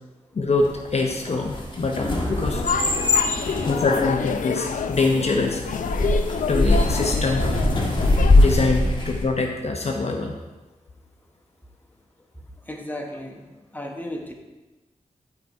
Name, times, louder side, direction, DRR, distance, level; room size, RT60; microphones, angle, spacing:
voice 1, 0.3-2.6 3.7-5.6 6.5-7.5 8.3-10.4, left 3 dB, 55° left, 2 dB, 0.8 m, -24 dB
sound 1, 0.6-9.2, left 2 dB, 35° left, 1.5 m, -22 dB
sound 2, 2.5-8.3, left 6 dB, 85° left, 0.5 m, -28 dB
voice 2, 3.2-3.7 12.7-13.5 13.7-14.3, left 1 dB, 15° left, 1 dB, 1.3 m, -35 dB
11.0 x 4.8 x 4.6 m, 1.1 s
wide cardioid pair, 75°, 13 cm